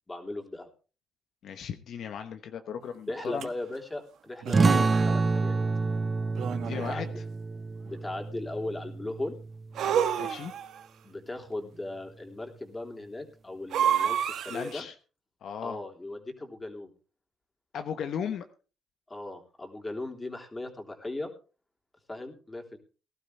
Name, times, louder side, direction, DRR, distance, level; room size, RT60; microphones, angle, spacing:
voice 1, 0.1-0.7 3.1-5.6 6.7-7.2 7.8-9.3 11.0-14.9 15.6-16.9 19.1-21.3 22.1-22.8, left 2 dB, 20° left, 2 dB, 3.4 m, -38 dB
voice 2, 1.4-3.5 6.5-7.1 10.2-10.5 14.5-14.9 15.4-15.8 17.7-18.5, left 8 dB, 70° left, 8 dB, 1.0 m, -36 dB
sound 1, 3.4-3.5 4.4-5.2 6.3-7.1 9.7-10.8 13.7-14.8, right 9 dB, 75° right, 1.3 m, -29 dB
sound 2, 4.5-9.7, right 3 dB, 30° right, 0.6 m, -28 dB
19.0 x 12.0 x 3.4 m, 0.35 s
cardioid pair, 90°, 0 cm